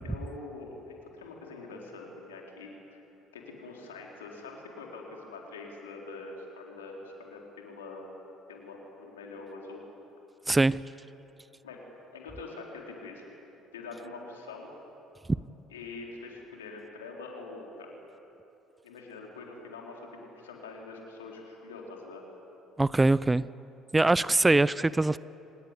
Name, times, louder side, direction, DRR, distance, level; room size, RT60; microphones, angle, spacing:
voice 1, 0.0-3.0 3.3-8.1 8.5-9.8 11.6-11.8 12.1-13.2 13.7-14.7 15.7-17.9 18.8-22.2, left 3 dB, 80° left, -1 dB, 4.2 m, -44 dB
voice 2, 10.5-10.8 22.8-23.5 23.9-25.2, right 2 dB, 15° right, 19 dB, 0.6 m, -22 dB
25.5 x 19.5 x 9.8 m, 3.0 s
hypercardioid pair, 55°, 0 cm